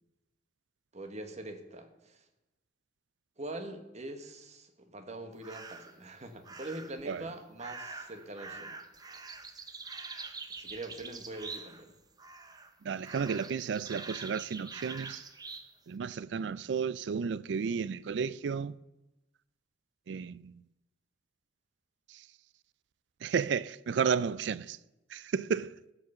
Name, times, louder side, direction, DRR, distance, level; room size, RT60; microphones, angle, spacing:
voice 1, 0.9-2.2 3.4-8.8 10.6-11.9, right 2 dB, 40° right, 1.3 m, -43 dB
sound 1, 5.4-6.0 6.4-7.0 7.6-11.9 12.2-12.7 13.0-15.7, right 4 dB, 20° right, 0.8 m, -45 dB
voice 2, 12.8-15.2 15.9-18.7 20.1-20.5 23.2-24.8 25.1-25.7, right 6 dB, 70° right, 0.4 m, -32 dB
16.0 x 5.5 x 7.0 m
head